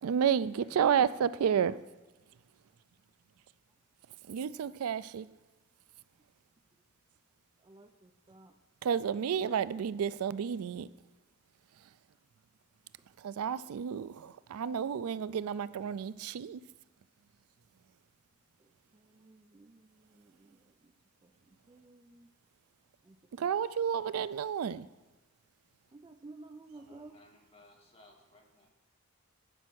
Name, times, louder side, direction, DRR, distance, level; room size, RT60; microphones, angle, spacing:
voice 1, 0.0-1.8 4.3-5.3 8.8-10.9 13.2-16.6 23.3-24.9, right 8 dB, 90° right, 17 dB, 0.4 m, -31 dB
voice 2, 0.5-1.3 11.4-11.6 13.5-14.1 26.7-28.7, left 2 dB, 30° left, 0 dB, 1.9 m, -61 dB
voice 3, 7.6-8.6 18.6-20.9 21.2-22.3 23.0-23.5 25.9-27.2, right 3 dB, 20° right, 8 dB, 0.4 m, -55 dB
12.0 x 5.7 x 6.1 m, 1.2 s
head